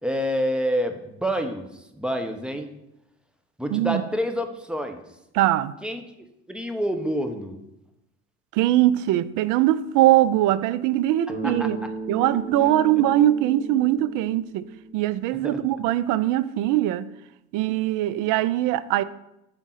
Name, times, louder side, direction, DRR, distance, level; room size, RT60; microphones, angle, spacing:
voice 1, 0.0-2.7 3.6-5.0 5.8-6.0 6.5-7.6 11.4-11.7 12.6-12.7 15.4-15.6, equal, 5° right, 0.7 m, -28 dB
voice 2, 3.7-4.0 5.3-5.7 8.5-11.8 12.1-14.7 14.9-17.1 17.5-19.0, right 14 dB, 60° right, 0.4 m, -21 dB
Bass guitar, 11.3-15.5, right 2 dB, 85° right, 1.4 m, -36 dB
5.0 x 3.6 x 5.7 m
hypercardioid pair, 70°, 35 cm